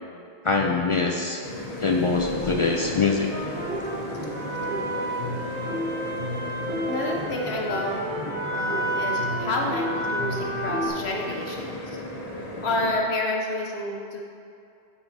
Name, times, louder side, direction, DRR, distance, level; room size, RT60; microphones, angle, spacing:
voice 1, 0.4-1.4 1.8-3.3, left 4 dB, 50° left, 1 dB, 0.3 m, -23 dB
sound 1, 1.4-12.9, left 1 dB, 35° left, 1.3 m, -36 dB
sound 2, 3.3-10.9, right 1 dB, 40° right, 1.9 m, -30 dB
voice 2, 6.9-8.0 8.5-11.8 12.6-14.2, left 2 dB, 70° left, 0 dB, 1.0 m, -29 dB
11.5 x 5.7 x 2.7 m, 2.5 s
omnidirectional pair, 1.2 m